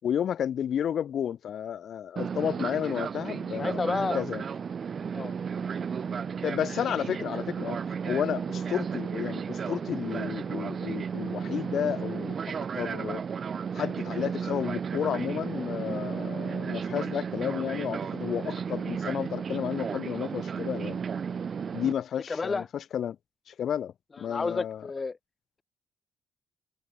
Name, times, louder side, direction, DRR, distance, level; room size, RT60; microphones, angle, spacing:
voice 1, 0.0-4.4 6.4-7.8 8.0-13.2 13.7-21.0 21.7-23.2 23.5-24.8, left 9 dB, 65° left, 7.8 m, -32 dB
Fixed-wing aircraft airplane, 2.2-21.9, right 6 dB, 45° right, 1.8 m, -33 dB
voice 2, 3.6-4.2 5.1-5.3 22.3-22.7 24.2-25.2, left 4 dB, 30° left, 2.0 m, -30 dB
cardioid pair, 90°, 0 cm